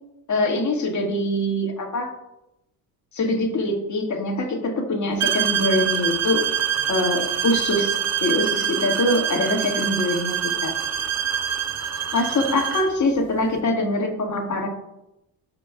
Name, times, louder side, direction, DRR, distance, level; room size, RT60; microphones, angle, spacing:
voice 1, 0.3-2.1 3.1-6.4 6.9-10.7 12.1-14.7, left 1 dB, 40° left, 2 dB, 1.9 m, -23 dB
sound 1, 5.2-13.0, right 9 dB, 35° right, 0.7 m, -25 dB
13.5 x 4.9 x 2.3 m, 0.89 s
supercardioid pair, 70°, 43 cm